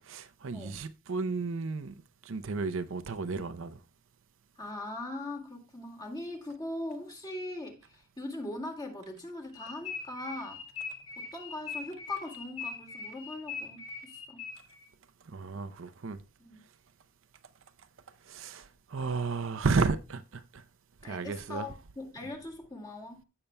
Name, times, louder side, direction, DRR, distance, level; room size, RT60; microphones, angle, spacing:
voice 1, 0.0-2.0 2.2-3.8 15.2-16.2 18.2-20.6 21.0-21.7, right 4 dB, 70° right, 0.6 m, -33 dB
voice 2, 4.6-10.6 11.2-14.5 16.4-16.6 21.0-23.2, left 2 dB, 20° left, 1.9 m, -40 dB
sound 1, 9.5-14.8, left 5 dB, 80° left, 2.1 m, -41 dB
15.5 x 6.8 x 2.2 m
head